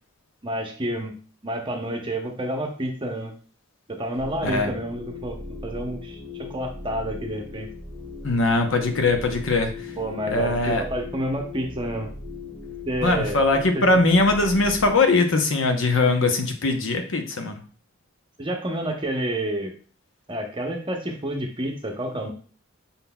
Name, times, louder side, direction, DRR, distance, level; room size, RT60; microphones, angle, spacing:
voice 1, 0.4-1.2 1.4-3.3 3.9-6.2 6.5-7.7 10.0-12.1 12.9-13.4 13.7-13.8 18.4-19.7 20.3-22.3, right 1 dB, 25° right, 2 dB, 0.7 m, -29 dB
sound 1, 4.2-15.1, left 3 dB, 35° left, 1.7 m, -38 dB
voice 2, 8.2-9.7 10.3-10.8 13.0-17.6, left 2 dB, 70° left, 5 dB, 0.8 m, -21 dB
5.6 x 3.8 x 2.3 m, 0.40 s
head